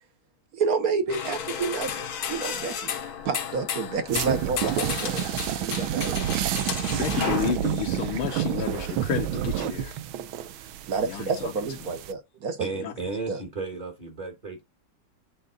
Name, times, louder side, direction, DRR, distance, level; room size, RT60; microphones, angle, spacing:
voice 1, 0.5-2.0 2.3-2.9 3.2-5.3 5.5-6.5 10.9-12.7 13.3-13.4, right 5 dB, 55° right, 1.1 m, -29 dB
sound 1, 1.1-7.5, left 8 dB, 55° left, 1.2 m, -33 dB
sound 2, 4.1-12.1, right 11 dB, 75° right, 1.4 m, -29 dB
voice 2, 6.9-9.9 11.0-11.5 12.8-12.9, left 11 dB, 75° left, 1.6 m, -31 dB
voice 3, 12.6-14.6, right 3 dB, 25° right, 1.2 m, -34 dB
8.0 x 3.6 x 3.9 m
omnidirectional pair, 2.4 m